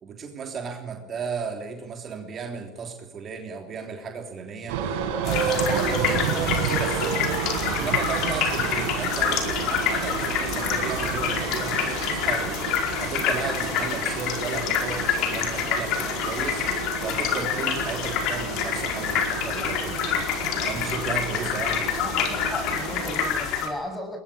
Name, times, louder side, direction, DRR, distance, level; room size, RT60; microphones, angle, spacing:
voice 1, 0.0-4.8 5.2-7.4 7.7-12.6 13.0-16.6 17.0-20.3 20.7-21.9, right 5 dB, 40° right, 3 dB, 3.3 m, -34 dB
sound 1, 4.7-23.3, right 7 dB, 75° right, 5.4 m, -31 dB
sound 2, 5.2-23.7, left 7 dB, 60° left, 4.9 m, -27 dB
voice 2, 22.0-24.2, left 1 dB, 15° left, 6 dB, 7.4 m, -36 dB
21.0 x 20.5 x 8.7 m, 0.99 s
supercardioid pair, 95°, 0 cm